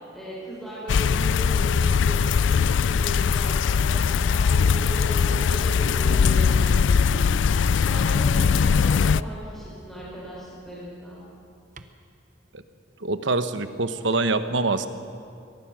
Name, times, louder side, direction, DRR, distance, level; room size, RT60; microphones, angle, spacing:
voice 1, 0.1-4.5 4.8-7.2 7.6-11.2, equal, ahead, -8 dB, 5.7 m, -38 dB
sound 1, 0.9-9.2, left 6 dB, 80° left, 0.4 m, -21 dB
Dog, 4.5-8.5 9.5-9.7 11.7-11.9, right 1 dB, 45° right, 0.9 m, -40 dB
voice 2, 13.0-14.9, right 3 dB, 80° right, 10 dB, 1.1 m, -25 dB
23.0 x 19.0 x 6.3 m, 2.4 s
head